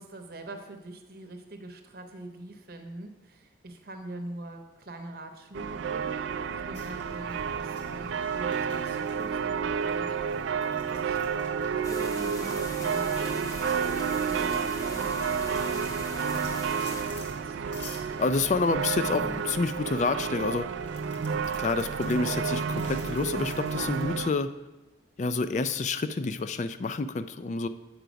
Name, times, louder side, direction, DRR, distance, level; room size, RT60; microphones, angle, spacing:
voice 1, 0.0-11.4 11.9-17.6, right 2 dB, 50° right, 5 dB, 0.8 m, -44 dB
sound 1, 5.5-24.3, right 6 dB, 75° right, 0.4 m, -30 dB
sound 2, 6.7-24.1, left 1 dB, 70° left, 1.4 m, -47 dB
sound 3, 11.8-17.0, left 1 dB, 20° left, 0.7 m, -41 dB
voice 2, 18.2-20.7 21.6-24.5 25.2-27.7, left 3 dB, 40° left, 11 dB, 0.3 m, -28 dB
7.9 x 5.7 x 5.1 m, 1.1 s
head